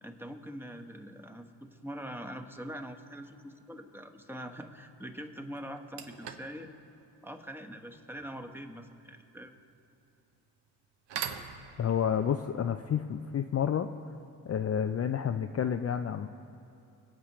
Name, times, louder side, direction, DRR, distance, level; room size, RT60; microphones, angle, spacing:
voice 1, 0.0-6.7 7.2-9.5, equal, 5° right, 4 dB, 1.3 m, -43 dB
sound 1, 4.9-5.0 5.6-14.3, right 8 dB, 70° right, 1.0 m, -46 dB
voice 2, 11.8-13.9 14.5-16.3, left 8 dB, 35° left, 7 dB, 0.6 m, -30 dB
23.0 x 8.3 x 3.2 m, 2.9 s
hypercardioid pair, 50°, 44 cm